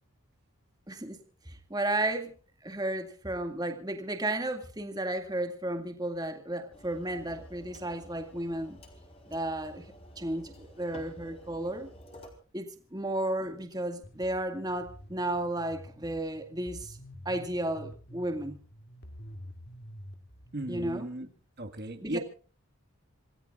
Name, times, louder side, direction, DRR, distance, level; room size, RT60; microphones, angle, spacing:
voice 1, 0.9-1.2 1.5-2.3 2.6-8.8 9.3-9.8 10.2-11.9 12.5-17.0 17.3-18.6 20.7-21.1 22.0-22.2, right 1 dB, 20° right, 5 dB, 2.1 m, -33 dB
sound 1, 6.7-12.3, left 1 dB, 25° left, 4.3 m, -51 dB
sound 2, 14.0-20.9, equal, 50° left, 2.6 m, -48 dB
voice 2, 20.5-21.3 21.6-22.2, right 1 dB, 45° right, 6 dB, 1.9 m, -36 dB
27.5 x 18.5 x 2.5 m, 0.39 s
head